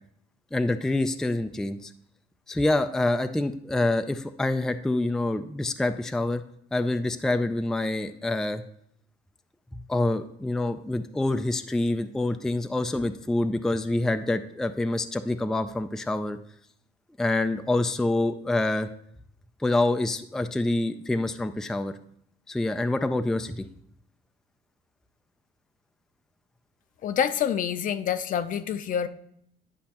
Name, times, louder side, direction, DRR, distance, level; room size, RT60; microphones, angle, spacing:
voice 1, 0.5-1.9 2.5-6.4 6.7-8.6 9.7-16.4 17.2-18.9 19.6-21.9 22.5-23.6, left 2 dB, 5° left, 0.3 m, -26 dB
voice 2, 27.0-29.1, left 8 dB, 50° left, 0.5 m, -27 dB
10.5 x 5.2 x 2.9 m
cardioid pair, 110°, 17 cm